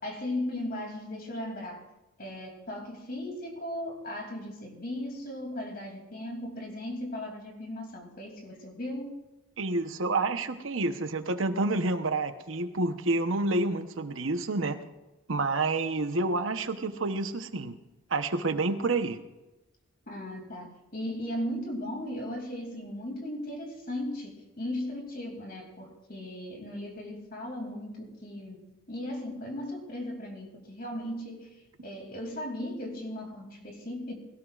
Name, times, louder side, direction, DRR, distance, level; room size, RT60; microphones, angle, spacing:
voice 1, 0.0-1.9 2.2-9.2 20.1-34.1, left 1 dB, 50° left, 1 dB, 2.9 m, -37 dB
voice 2, 9.6-14.8 15.3-17.8 18.1-19.2, right 2 dB, 75° right, 9 dB, 0.9 m, -29 dB
20.0 x 17.5 x 2.5 m, 1.0 s
head